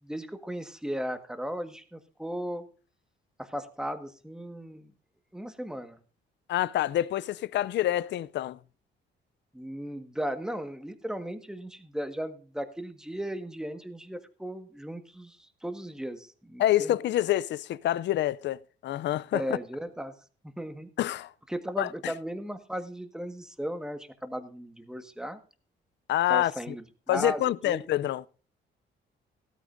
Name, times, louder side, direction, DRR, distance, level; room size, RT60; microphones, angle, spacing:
voice 1, 0.0-2.7 3.4-4.9 5.3-6.0 9.5-17.0 19.3-20.1 20.4-20.9 21.5-25.4 26.3-27.8, equal, 5° right, 1.5 m, -36 dB
voice 2, 6.5-8.6 16.6-19.4 21.0-21.3 21.8-22.1 26.1-26.7 27.1-28.2, left 13 dB, 65° left, 0.5 m, -27 dB
16.0 x 13.5 x 2.6 m
cardioid pair, 90°, 20 cm